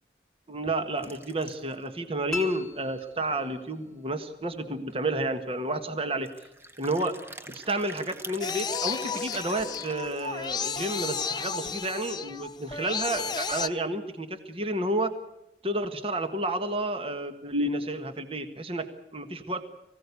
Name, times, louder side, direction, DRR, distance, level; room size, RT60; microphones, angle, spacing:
voice 1, 0.5-6.3 6.8-7.2 7.5-15.1 15.6-19.6, right 1 dB, 30° right, 8 dB, 1.5 m, -31 dB
sound 1, 1.0-1.9 2.4-2.5 2.7-2.8 3.2-3.3 4.5-4.6 4.9-5.1 6.2-10.8, right 2 dB, 15° right, 1.1 m, -46 dB
sound 2, 2.3-3.9, left 3 dB, 5° left, 4.8 m, -39 dB
sound 3, 8.4-13.7, left 5 dB, 25° left, 0.8 m, -33 dB
24.0 x 16.5 x 8.4 m, 0.93 s
head